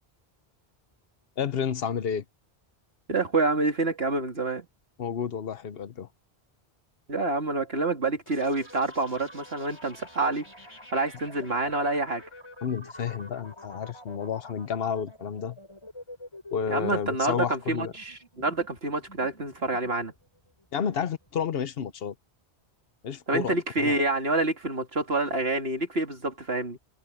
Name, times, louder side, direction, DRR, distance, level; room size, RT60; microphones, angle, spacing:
voice 1, 1.4-2.2 5.0-6.1 12.6-15.6 16.5-17.9 20.7-22.1 23.0-24.0, left 7 dB, 65° left, 1.1 m, -31 dB
voice 2, 3.1-4.7 7.1-10.5 10.9-12.2 16.7-20.1 23.3-26.8, right 2 dB, 70° right, 3.0 m, -27 dB
sound 1, 8.3-21.9, left 1 dB, 25° left, 5.2 m, -48 dB
omnidirectional pair, 1.1 m